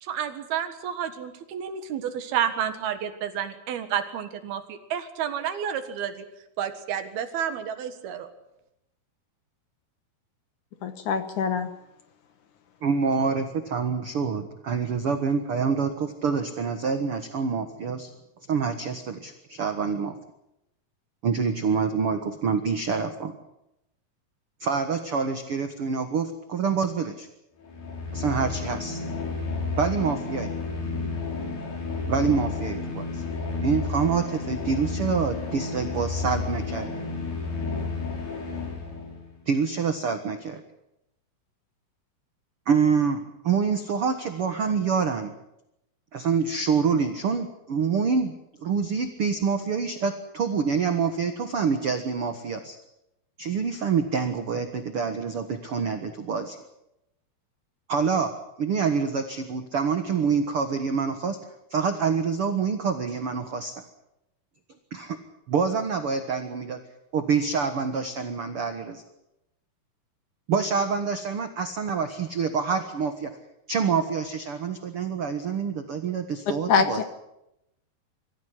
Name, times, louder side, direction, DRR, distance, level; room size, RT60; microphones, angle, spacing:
voice 1, 0.0-6.3 6.6-8.3, right 9 dB, 75° right, 9 dB, 3.4 m, -30 dB
voice 2, 10.8-11.7 76.7-77.0, left 6 dB, 65° left, 9 dB, 2.3 m, -24 dB
voice 3, 12.8-18.1 18.5-20.1 21.2-23.4 24.6-27.3 28.1-29.0 29.8-30.5 32.1-33.2 33.6-36.9 39.5-40.6 42.7-45.3 46.1-48.3 48.6-52.8 53.4-56.6 57.9-58.3 58.6-61.4 61.7-63.7 64.9-65.2 65.5-66.8 67.1-69.0 70.5-73.3 73.7-77.0, right 5 dB, 55° right, 7 dB, 1.7 m, -26 dB
sound 1, 27.6-39.3, left 4 dB, 80° left, 6.6 m, -31 dB
24.5 x 15.0 x 9.7 m, 0.87 s
omnidirectional pair, 4.5 m